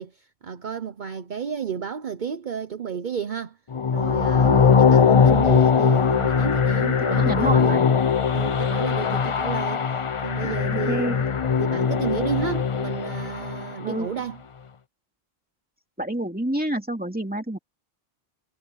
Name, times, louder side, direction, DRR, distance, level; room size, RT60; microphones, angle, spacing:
voice 1, 0.0-3.6 3.9-7.8 8.3-9.8 10.2-11.1 11.6-14.4, right 7 dB, 50° right, 0.9 m, -31 dB
sound 1, 3.7-13.8, left 6 dB, 40° left, 0.6 m, -20 dB
voice 2, 4.4-4.8 7.0-7.9 10.4-11.2 13.8-14.1 16.0-17.6, right 1 dB, 10° right, 2.7 m, -28 dB
omnidirectional pair, 1.0 m